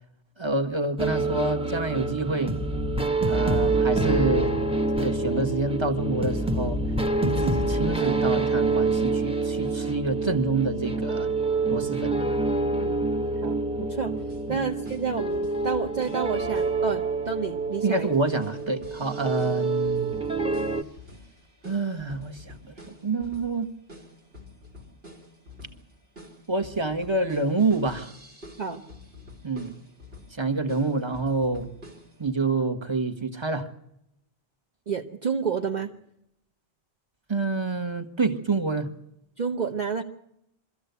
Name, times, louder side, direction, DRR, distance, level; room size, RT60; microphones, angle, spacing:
voice 1, 0.4-2.6 3.3-4.5 4.9-6.8 7.2-11.3 11.7-12.2 14.5-14.7 17.8-20.1 21.6-22.7 23.0-23.7 26.5-28.1 29.4-29.7 30.3-31.7 32.2-33.7 37.3-38.9, right 3 dB, 25° right, 5 dB, 1.6 m, -27 dB
sound 1, 1.0-20.8, right 3 dB, 5° right, 1.0 m, -27 dB
voice 2, 13.4-14.2 14.5-18.1 28.6-28.8 34.9-35.9 39.4-40.0, right 6 dB, 45° right, 4 dB, 1.1 m, -30 dB
sound 2, 14.2-16.8 18.1-32.3, left 2 dB, 75° right, 3.3 m, -48 dB
24.0 x 14.5 x 8.2 m, 0.83 s
omnidirectional pair, 1.0 m